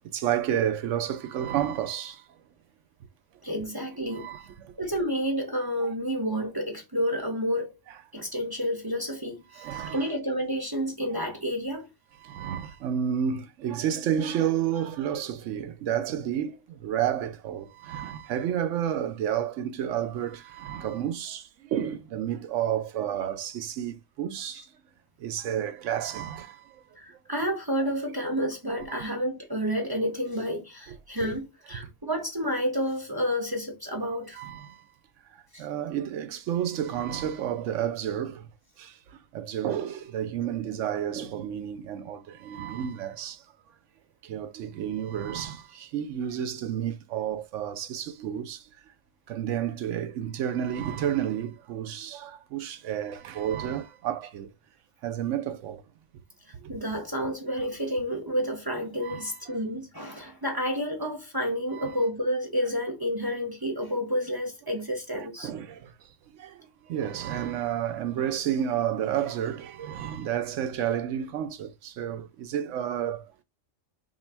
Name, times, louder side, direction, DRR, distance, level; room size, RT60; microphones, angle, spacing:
voice 1, 0.1-2.3 4.1-4.7 5.8-5.9 9.5-10.1 11.2-11.3 12.2-24.7 25.2-26.9 28.9-29.1 30.9-31.0 34.4-34.9 35.3-38.5 38.8-43.4 44.2-48.6 49.3-54.5 55.0-55.8 56.5-56.7 59.0-59.4 61.7-62.0 65.2-65.9 66.3-66.6 66.9-73.4, right 10 dB, 85° right, 1.0 m, -31 dB
voice 2, 3.4-4.3 4.8-7.8 8.1-11.9 27.0-34.4 35.5-35.7 56.7-65.5, equal, 25° right, 0.7 m, -30 dB
3.1 x 2.5 x 4.4 m
omnidirectional pair, 1.2 m